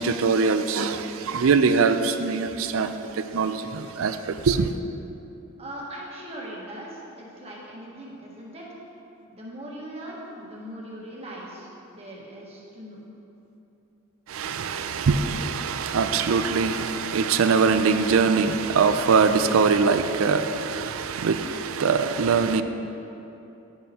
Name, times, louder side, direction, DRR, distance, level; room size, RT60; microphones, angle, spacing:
voice 1, 0.0-4.7 14.3-22.6, right 5 dB, 70° right, 10 dB, 0.4 m, -22 dB
voice 2, 5.6-8.8 9.3-13.0, right 1 dB, 30° right, -4 dB, 1.5 m, -40 dB
9.6 x 9.4 x 2.9 m, 2.9 s
head